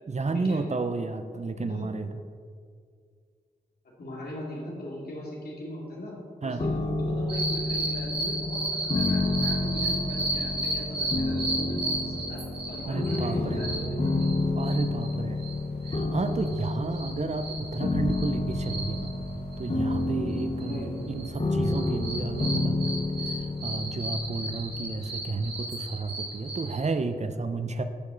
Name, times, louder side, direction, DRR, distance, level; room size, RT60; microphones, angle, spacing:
voice 1, 0.1-2.1 6.4-6.6 12.9-13.6 14.5-15.4 15.9-19.1 19.6-27.8, right 3 dB, 45° right, 9 dB, 0.6 m, -32 dB
voice 2, 1.6-1.9 4.0-6.1 6.4-12.4 12.7-14.5 20.6-20.9, left 1 dB, 75° left, -4 dB, 2.5 m, -39 dB
sound 1, 6.6-25.5, left 2 dB, 40° left, 1.0 m, -30 dB
sound 2, 7.3-15.1 15.4-15.5 15.8-20.0 20.3-21.4 21.7-26.9, right 2 dB, 85° right, 1.7 m, -34 dB
13.0 x 5.3 x 3.9 m, 2.1 s
cardioid pair, 45°, 17 cm